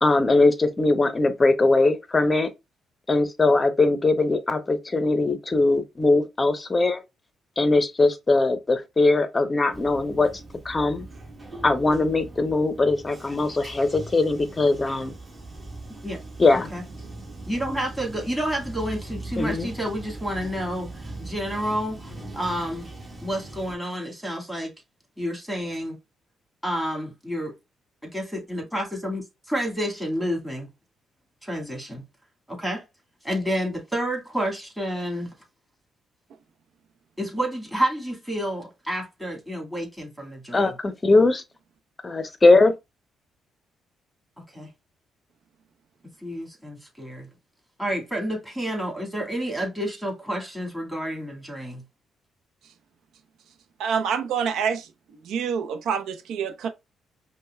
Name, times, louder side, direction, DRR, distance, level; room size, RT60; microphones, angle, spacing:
voice 1, 0.0-2.5 3.1-7.0 7.6-10.3 10.6-11.1 11.6-15.2 16.4-16.7 19.4-19.7 40.5-41.4 42.0-42.7, left 2 dB, 25° left, 0.6 m, -20 dB
Bathtub (filling or washing), 9.7-23.8, right 2 dB, 25° right, 1.5 m, -40 dB
voice 2, 17.5-22.9 23.2-24.7 25.2-26.0 26.6-27.5 28.1-28.2 28.5-30.7 31.4-32.0 32.5-32.8 33.2-35.3 37.2-40.7 44.5-44.7 46.2-47.3 47.8-51.8, equal, 5° right, 1.9 m, -29 dB
voice 3, 53.8-56.7, right 7 dB, 80° right, 0.6 m, -27 dB
5.2 x 2.1 x 2.3 m
cardioid pair, 90°, 0 cm